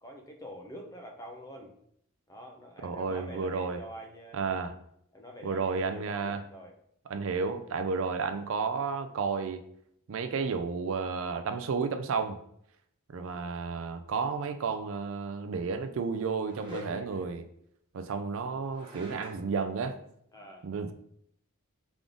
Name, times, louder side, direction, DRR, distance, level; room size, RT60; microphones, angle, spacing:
voice 1, 0.0-1.7 2.3-4.5 5.1-6.7 16.7-17.3 20.3-20.7, equal, 15° left, 2 dB, 0.6 m, -45 dB
voice 2, 2.8-3.8 4.3-4.7 5.4-6.4 7.1-9.6 10.1-12.4 13.1-17.4 17.9-20.0 20.6-20.9, right 5 dB, 60° right, 9 dB, 0.4 m, -32 dB
sound 1, 13.3-13.4 16.4-17.2 18.7-19.5, equal, 20° right, 0.9 m, -51 dB
3.7 x 3.6 x 3.5 m, 0.71 s
head